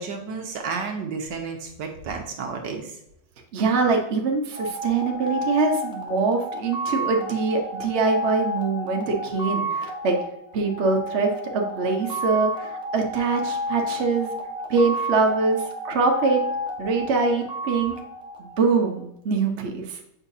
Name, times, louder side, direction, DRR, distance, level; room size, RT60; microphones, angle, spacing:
voice 1, 0.0-3.0, right 5 dB, 65° right, 2 dB, 1.5 m, -32 dB
voice 2, 3.5-10.2 10.5-14.3 14.7-16.4 16.8-17.9 18.4-20.0, right 4 dB, 45° right, 1 dB, 0.9 m, -23 dB
sound 1, 4.5-19.0, equal, 5° right, 0.5 m, -31 dB
7.3 x 5.0 x 2.7 m, 0.81 s
omnidirectional pair, 2.3 m